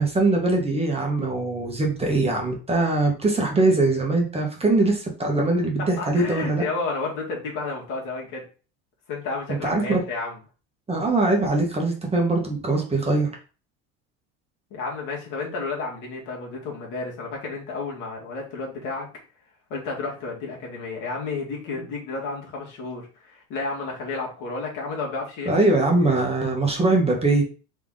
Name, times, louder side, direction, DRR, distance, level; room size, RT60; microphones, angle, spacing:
voice 1, 0.0-6.6 9.6-10.0 10.9-13.3 25.5-27.4, right 2 dB, 15° right, 0 dB, 1.3 m, -22 dB
voice 2, 5.8-8.5 9.1-10.4 14.7-19.1 19.7-25.6, left 3 dB, 60° left, -2 dB, 2.0 m, -31 dB
3.8 x 3.4 x 3.8 m, 0.36 s
supercardioid pair, 100°, 34 cm